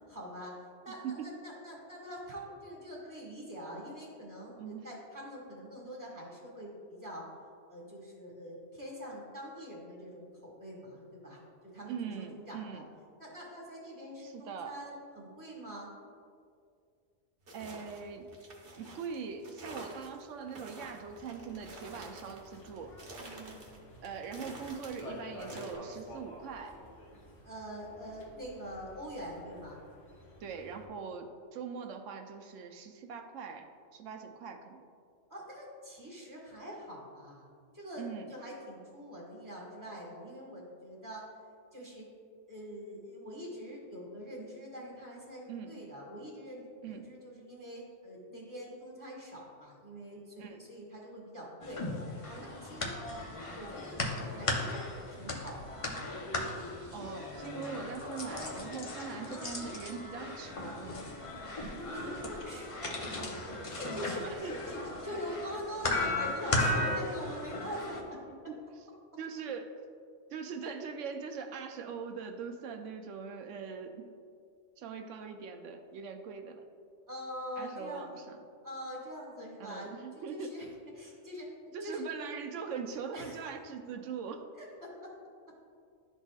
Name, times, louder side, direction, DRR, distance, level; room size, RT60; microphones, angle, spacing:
voice 1, 0.1-7.2 7.7-11.4 11.7-12.8 13.2-15.9 23.2-23.6 27.4-29.8 35.3-37.5 37.7-41.2 41.7-42.0 42.5-51.9 52.3-52.9 53.5-54.8 55.1-55.9 59.1-60.2 61.3-62.9 63.6-68.2 77.1-78.2 78.6-79.9 80.3-80.7 80.9-82.1 83.1-83.5 84.6-85.1, equal, 15° right, -4 dB, 1.6 m, -44 dB
voice 2, 11.9-12.8 14.2-14.7 17.5-18.3 18.8-22.9 24.0-26.8 30.4-34.9 38.0-38.3 45.5-45.8 46.8-47.1 50.4-50.6 56.9-61.0 63.5-63.7 64.1-64.7 68.5-68.6 69.2-69.7 70.3-74.0 74.8-76.6 77.6-78.4 79.6-80.6 81.7-84.4, right 6 dB, 85° right, 6 dB, 1.0 m, -41 dB
sound 1, 17.4-25.8, right 2 dB, 50° right, 1.1 m, -49 dB
sound 2, 20.8-30.9, equal, 70° left, 1.6 m, -51 dB
sound 3, 51.6-68.0, left 2 dB, 35° left, 0.6 m, -36 dB
12.0 x 4.1 x 2.3 m, 2.3 s
omnidirectional pair, 1.2 m